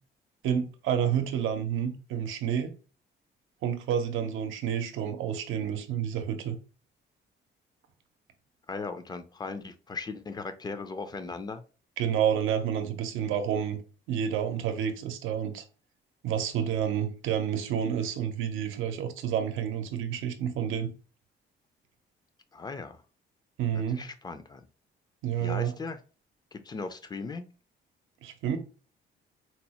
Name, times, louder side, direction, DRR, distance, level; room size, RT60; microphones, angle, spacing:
voice 1, 0.4-2.7 3.6-6.6 12.0-13.8 14.1-15.6 16.2-20.9 23.6-24.0 25.2-25.7 28.2-28.6, right 8 dB, 85° right, 0.7 m, -29 dB
voice 2, 8.7-11.6 22.5-23.0 23.7-24.7 25.4-26.0 26.5-27.5, left 4 dB, 20° left, 0.5 m, -38 dB
4.2 x 2.0 x 2.9 m
cardioid pair, 90°, 20 cm